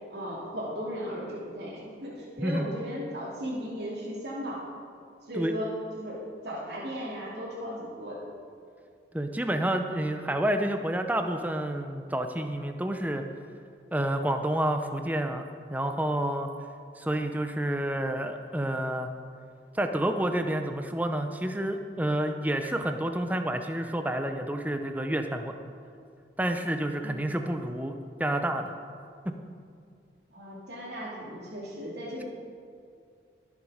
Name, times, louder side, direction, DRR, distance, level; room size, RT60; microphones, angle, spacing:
voice 1, 0.1-4.6 5.3-8.2 27.0-27.4 30.3-32.2, equal, 65° right, -6 dB, 2.9 m, -36 dB
voice 2, 9.1-13.2 13.9-16.5 17.0-19.1 19.7-25.5 26.4-27.9 28.2-28.7, right 1 dB, 10° right, 6 dB, 0.6 m, -29 dB
20.5 x 7.2 x 5.0 m, 2.3 s
head